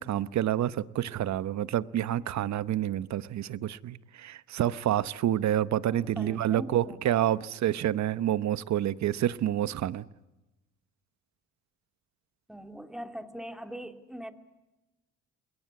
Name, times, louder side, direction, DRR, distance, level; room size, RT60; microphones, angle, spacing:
voice 1, 0.0-10.0, right 12 dB, 65° right, 16 dB, 0.9 m, -28 dB
voice 2, 5.9-7.3 12.5-14.3, equal, ahead, 7 dB, 2.3 m, -41 dB
28.0 x 21.5 x 8.3 m, 1.0 s
cardioid pair, 90°, 30 cm